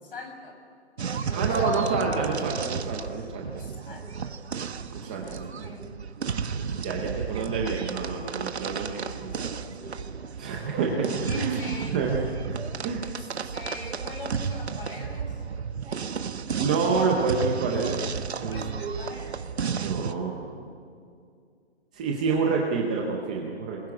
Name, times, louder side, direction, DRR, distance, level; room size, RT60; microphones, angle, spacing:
voice 1, 0.0-0.6 1.0-1.7 3.1-4.4 5.1-6.0 7.1-7.3 9.3-10.2 10.8-12.0 13.5-15.4 18.5-19.4 22.3-22.4, left 1 dB, 55° left, 4 dB, 6.6 m, -41 dB
sound 1, 1.0-20.1, right 6 dB, 70° right, 1.5 m, -33 dB
voice 2, 1.3-3.4 4.9-5.5 6.3-9.5 10.4-11.0 11.3-11.6 11.9-12.2 12.8-13.1 16.6-18.0 18.4-18.7 19.8-20.6 21.9-23.8, right 4 dB, 5° right, -1 dB, 0.6 m, -28 dB
27.5 x 21.0 x 9.5 m, 2.3 s
hypercardioid pair, 160°, 34 cm